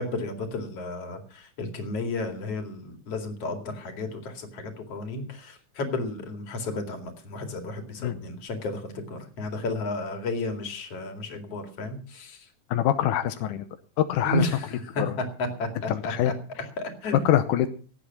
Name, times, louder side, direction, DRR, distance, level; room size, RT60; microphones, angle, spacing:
voice 1, 0.0-12.5 14.2-14.7 14.9-16.1 16.8-17.3, left 2 dB, 55° left, 6 dB, 3.2 m, -32 dB
voice 2, 12.7-13.7 14.0-14.5 15.0-15.1 15.9-16.3 17.2-17.7, left 11 dB, 90° left, 9 dB, 2.4 m, -24 dB
17.5 x 8.5 x 5.9 m, 0.41 s
omnidirectional pair, 3.5 m